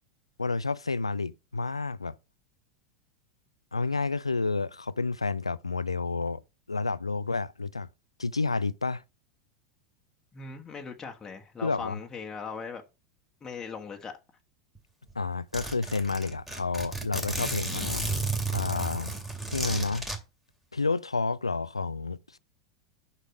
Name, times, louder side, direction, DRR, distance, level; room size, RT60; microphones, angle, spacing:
voice 1, 0.4-2.1 3.7-6.4 6.7-7.9 8.2-9.0 11.6-12.0 15.1-18.1 18.5-19.1 19.5-20.1 20.7-22.4, left 3 dB, 85° left, 0.4 m, -30 dB
voice 2, 10.3-12.8 13.4-14.1, left 5 dB, 20° left, 1.4 m, -39 dB
Zipper (clothing), 14.7-14.8 15.1-15.2 15.5-20.2, right 2 dB, 5° right, 2.3 m, -33 dB
6.6 x 5.7 x 6.3 m
figure-of-eight pair, 85°, 3 cm